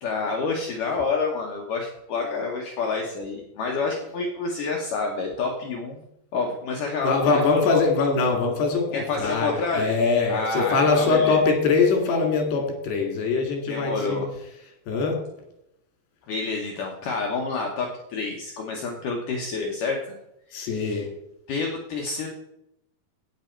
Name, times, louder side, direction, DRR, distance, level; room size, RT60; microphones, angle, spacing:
voice 1, 0.0-6.0 6.3-7.8 8.9-9.9 10.3-11.4 13.7-14.3 16.3-20.2 20.5-21.0 21.5-22.3, left 4 dB, 65° left, 0 dB, 2.3 m, -28 dB
voice 2, 7.0-14.2 14.9-15.2 20.5-21.1, left 4 dB, 90° left, 2 dB, 4.4 m, -22 dB
12.0 x 8.9 x 4.5 m, 0.82 s
omnidirectional pair, 4.6 m